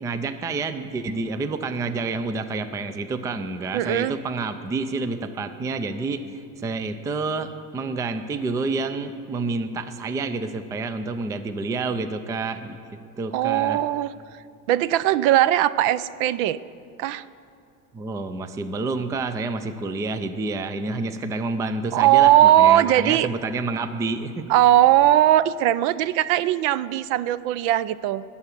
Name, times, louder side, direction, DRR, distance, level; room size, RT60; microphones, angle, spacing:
voice 1, 0.0-6.3 6.6-12.8 13.2-13.8 17.9-24.5, right 3 dB, 10° right, 10 dB, 0.3 m, -29 dB
voice 2, 3.7-4.1 13.3-14.1 14.7-16.6 17.0-17.2 21.9-23.3 24.5-28.2, right 13 dB, 60° right, 17 dB, 0.5 m, -19 dB
19.0 x 7.1 x 8.1 m, 2.4 s
cardioid pair, 145°, 38 cm